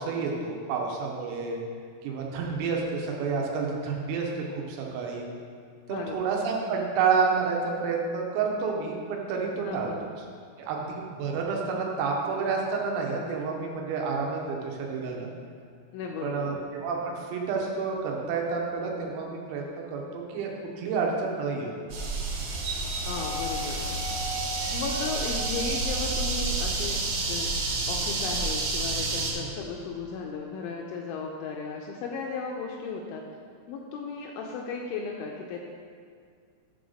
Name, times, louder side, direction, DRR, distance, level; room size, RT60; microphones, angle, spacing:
voice 1, 0.0-1.6 2.0-4.3 4.6-5.3 5.9-9.9 10.6-15.3 16.2-20.5 20.8-21.9 29.4-29.5, right 5 dB, 90° right, -1 dB, 3.7 m, -29 dB
voice 2, 9.7-10.1 15.9-16.5 23.0-24.0 24.7-27.0 27.3-27.5 27.9-33.2 33.7-35.6, left 4 dB, 85° left, 0 dB, 2.7 m, -35 dB
sound 1, 21.9-29.3, right 2 dB, 65° right, 2.3 m, -29 dB
10.5 x 3.9 x 6.4 m, 2.1 s
omnidirectional pair, 5.9 m